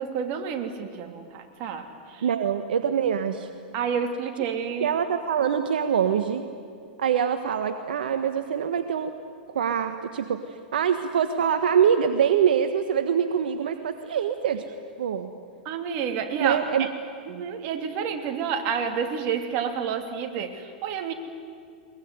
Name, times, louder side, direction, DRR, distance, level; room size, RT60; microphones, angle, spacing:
voice 1, 0.0-2.3 3.7-4.9 15.6-16.9 17.3-21.1, right 7 dB, 45° right, 5 dB, 3.1 m, -29 dB
voice 2, 2.2-3.5 4.8-6.4 7.0-9.1 9.5-10.4 10.7-14.6 15.0-15.3 16.4-16.8, right 8 dB, 80° right, 8 dB, 1.4 m, -24 dB
22.5 x 21.5 x 9.7 m, 2.2 s
hypercardioid pair, 120°, 5 cm